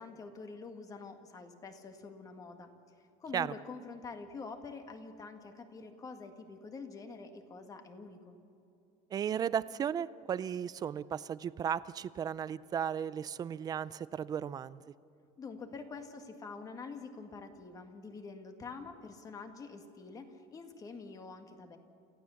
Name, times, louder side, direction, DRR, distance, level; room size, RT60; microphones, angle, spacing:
voice 1, 0.0-2.7 3.2-8.4 15.4-21.8, left 4 dB, 25° left, 6 dB, 1.8 m, -46 dB
voice 2, 9.1-14.8, right 8 dB, 25° right, 17 dB, 0.4 m, -35 dB
28.5 x 15.0 x 7.1 m, 2.8 s
cardioid pair, 160°, 15 cm